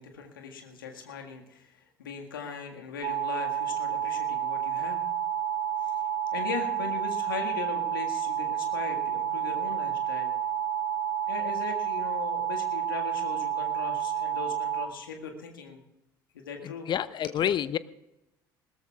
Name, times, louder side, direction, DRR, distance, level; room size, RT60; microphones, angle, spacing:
voice 1, 0.0-5.0 5.8-6.0 6.3-10.3 11.3-15.8 16.3-16.9, left 6 dB, 80° left, 3 dB, 1.8 m, -39 dB
sound 1, 3.0-14.9, right 9 dB, 55° right, 1.8 m, -30 dB
voice 2, 16.9-17.8, left 10 dB, 40° left, 16 dB, 0.7 m, -28 dB
20.5 x 18.0 x 2.4 m, 0.91 s
figure-of-eight pair, 60°, 11 cm